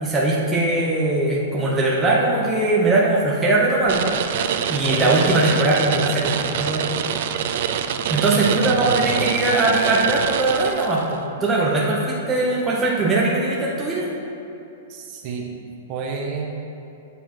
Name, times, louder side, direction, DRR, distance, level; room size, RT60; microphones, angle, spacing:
voice 1, 0.0-4.1 4.7-6.9 8.1-14.1, right 2 dB, 10° right, -5 dB, 1.0 m, -20 dB
sound 1, 3.9-11.2, right 8 dB, 55° right, 0.5 m, -25 dB
voice 2, 8.4-9.3 14.9-15.5 15.9-16.5, right 5 dB, 40° right, 0 dB, 1.3 m, -30 dB
8.0 x 7.1 x 4.6 m, 2.9 s
hypercardioid pair, 150°, 0 cm